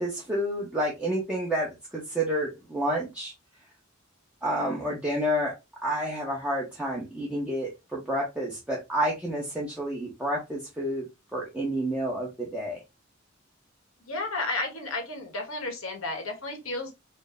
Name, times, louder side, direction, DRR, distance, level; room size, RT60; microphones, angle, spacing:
voice 1, 0.0-3.3 4.4-5.5 5.8-11.0 11.3-12.8, equal, 5° right, -4 dB, 0.7 m, -29 dB
voice 2, 14.1-16.9, left 2 dB, 85° left, 3 dB, 1.2 m, -32 dB
4.3 x 2.0 x 3.4 m, 0.24 s
head